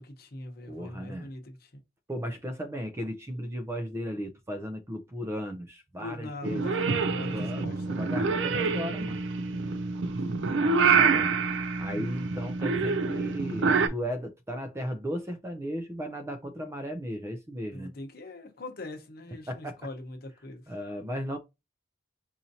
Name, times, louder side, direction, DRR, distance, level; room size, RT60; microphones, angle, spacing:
voice 1, 0.0-1.7 5.2-5.3 6.0-8.3 10.9-11.4 17.7-20.6, left 2 dB, 55° left, 0.9 m, -42 dB
voice 2, 0.7-1.3 2.1-6.7 7.3-7.7 8.0-9.2 10.5-11.3 11.8-17.9 19.5-19.8 20.7-21.4, equal, 15° right, 0.4 m, -36 dB
Purr / Meow, 6.4-13.9, right 4 dB, 75° right, 0.4 m, -26 dB
4.3 x 2.6 x 2.7 m
head